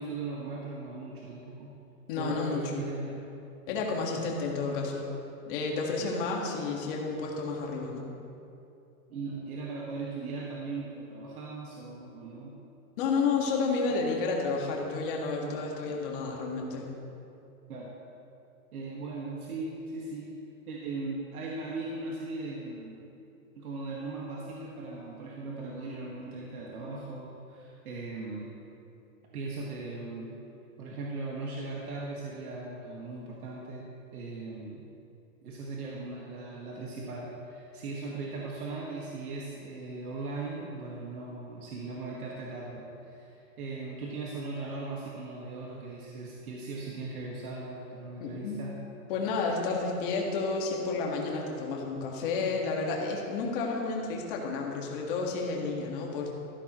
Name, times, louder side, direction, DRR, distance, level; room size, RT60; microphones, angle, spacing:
voice 1, 0.0-1.7 2.2-3.3 4.1-5.0 5.9-6.9 9.1-12.6 13.9-14.4 14.8-15.0 15.4-16.8 17.7-17.9 18.7-20.4 20.7-23.0 23.6-28.5 29.3-30.3 30.8-34.8 35.4-48.7, right 3 dB, 85° right, -3 dB, 2.0 m, -39 dB
voice 2, 2.1-2.8 3.7-5.1 5.5-8.0 13.0-16.9 48.2-48.6 49.1-56.3, left 4 dB, 35° left, -1 dB, 1.9 m, -31 dB
14.0 x 12.5 x 3.2 m, 2.7 s
hypercardioid pair, 165°, 43 cm